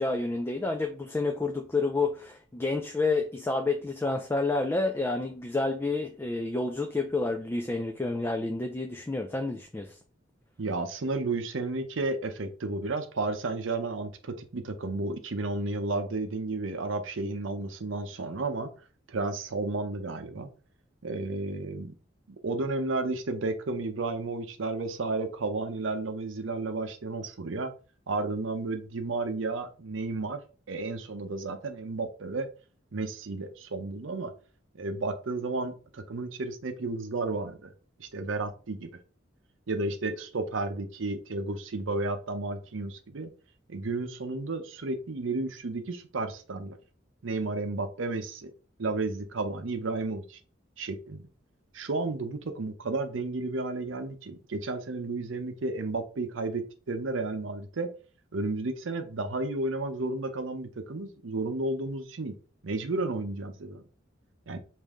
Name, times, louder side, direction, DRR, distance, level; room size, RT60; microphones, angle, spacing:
voice 1, 0.0-9.9, left 3 dB, 10° left, 4 dB, 0.3 m, -29 dB
voice 2, 10.6-18.7 19.1-20.5 21.0-21.9 22.4-27.7 28.1-30.4 30.7-32.5 32.9-34.3 34.7-37.7 38.0-38.9 39.7-43.3 43.7-46.8 47.2-48.5 48.8-50.4 50.8-51.3 51.7-57.9 58.3-62.4 62.6-63.8 64.5-64.6, right 3 dB, 80° right, 8 dB, 0.6 m, -32 dB
5.4 x 2.7 x 3.5 m, 0.37 s
head